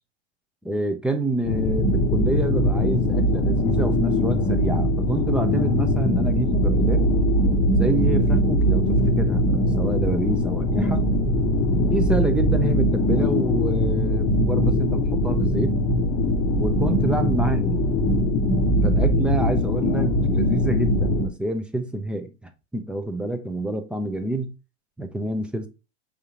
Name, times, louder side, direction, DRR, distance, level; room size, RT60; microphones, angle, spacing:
voice 1, 0.6-7.1 7.7-11.0 11.8-15.8 16.5-17.9 18.8-22.3 22.7-24.5 25.0-25.7, right 2 dB, 5° right, 0.4 m, -27 dB
sound 1, 1.5-21.3, left 1 dB, 25° left, 0.8 m, -21 dB
4.9 x 3.5 x 2.8 m
hypercardioid pair, 115°, 35 cm